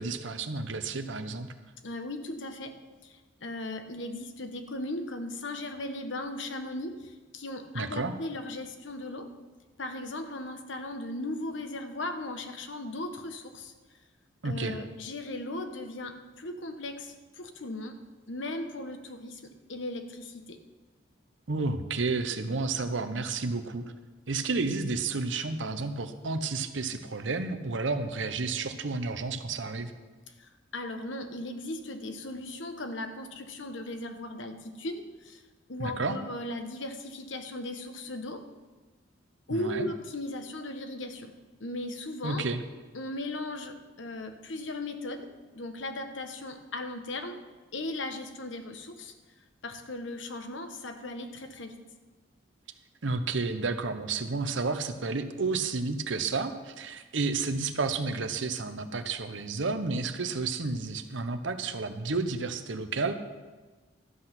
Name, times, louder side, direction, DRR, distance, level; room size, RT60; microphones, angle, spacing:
voice 1, 0.0-1.5 7.7-8.1 14.4-14.8 21.5-23.9 24.3-29.9 35.8-36.2 39.5-39.9 42.2-42.6 53.0-63.1, right 3 dB, 80° right, 9 dB, 0.9 m, -31 dB
voice 2, 1.8-9.3 9.8-13.7 14.4-20.6 30.4-35.4 35.7-38.5 39.5-41.3 41.6-42.5 42.9-47.4 47.7-49.1 49.6-51.8, left 1 dB, 85° left, 7 dB, 1.1 m, -37 dB
12.5 x 7.9 x 6.0 m, 1.3 s
head